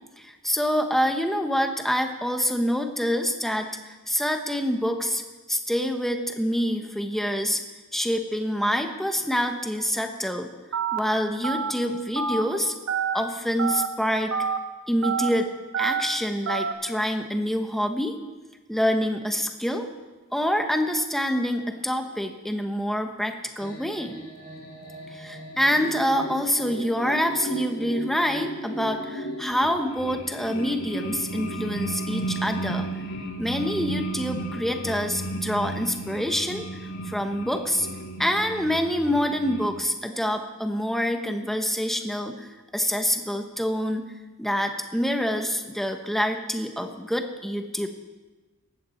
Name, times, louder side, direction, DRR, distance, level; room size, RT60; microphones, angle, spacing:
voice 1, 0.2-5.2 5.5-7.6 7.9-10.5 10.9-12.7 13.1-14.3 14.9-15.5 15.8-18.2 18.7-19.9 20.3-24.1 25.1-32.9 33.4-37.9 38.2-44.1 44.4-47.9, equal, ahead, 5 dB, 1.1 m, -26 dB
Telephone, 10.7-11.0 11.4-11.7 12.2-12.4 12.9-13.1 13.6-13.9 14.3-14.6 15.0-15.3 15.7-16.0 16.5-16.7, right 6 dB, 65° right, 1.3 m, -26 dB
sound 1, 23.6-39.7, right 1 dB, 80° left, 3.6 m, -34 dB
18.5 x 14.5 x 4.4 m, 1.2 s
head